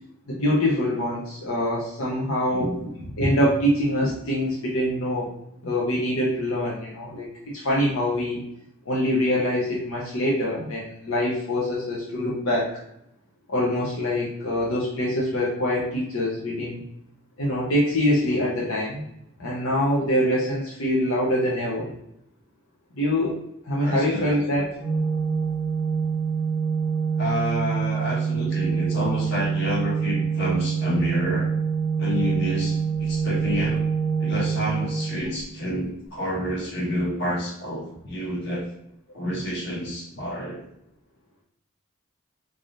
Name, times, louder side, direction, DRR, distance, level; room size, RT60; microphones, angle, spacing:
voice 1, 0.3-2.8 3.2-5.3 5.6-7.3 7.5-8.4 8.9-12.7 13.5-16.8 17.4-19.0 19.4-21.9 22.9-23.4 23.6-24.8 39.2-39.3, left 1 dB, 85° left, -5 dB, 0.8 m, -24 dB
voice 2, 2.5-2.8 23.8-24.3 27.2-31.5 32.0-33.8 34.2-38.7 39.1-40.6, left 1 dB, 55° left, -5 dB, 1.4 m, -29 dB
Organ, 24.8-35.7, right 6 dB, 10° left, 0.9 m, -25 dB
3.8 x 3.4 x 2.6 m, 0.80 s
head